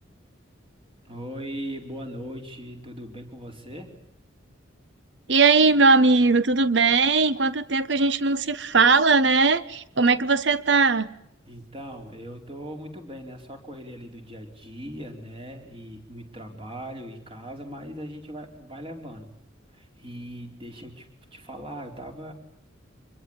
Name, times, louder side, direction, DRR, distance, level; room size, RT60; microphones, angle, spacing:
voice 1, 1.0-3.9 11.5-19.3 19.7-22.3, equal, 30° right, 4.6 m, -39 dB
voice 2, 5.3-11.1, right 4 dB, 65° right, 1.1 m, -19 dB
26.0 x 22.5 x 9.0 m
head